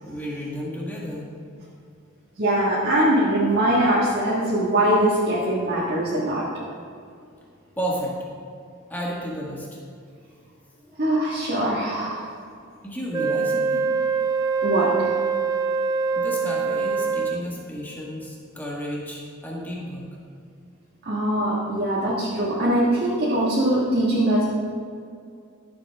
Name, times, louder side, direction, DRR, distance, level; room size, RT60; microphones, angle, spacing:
voice 1, 0.0-1.3 7.8-8.2 8.9-9.7 10.8-11.0 12.8-13.9 16.2-20.1, equal, 10° left, -4 dB, 1.7 m, -32 dB
voice 2, 2.4-6.4 11.0-12.2 14.6-15.1 21.0-24.4, right 1 dB, 45° right, -7 dB, 1.7 m, -22 dB
Wind instrument woodwind instrument, 13.1-17.5, right 5 dB, 20° right, 0.4 m, -24 dB
13.5 x 7.4 x 3.6 m, 2.3 s
head